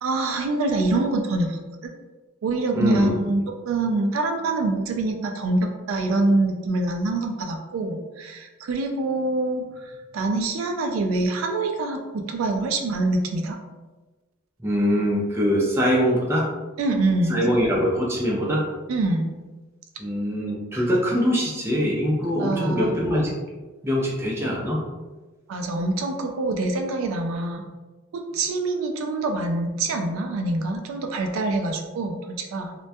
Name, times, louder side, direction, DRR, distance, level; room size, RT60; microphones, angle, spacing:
voice 1, 0.0-1.9 2.4-9.6 10.1-13.6 16.8-17.4 18.9-19.3 22.4-23.0 25.5-27.6 28.1-32.8, right 2 dB, 80° right, 4 dB, 0.3 m, -25 dB
voice 2, 2.7-3.2 14.6-16.5 17.3-18.6 20.0-23.3 23.8-24.8, equal, 10° right, -4 dB, 0.4 m, -23 dB
2.2 x 2.1 x 2.6 m, 1.2 s
head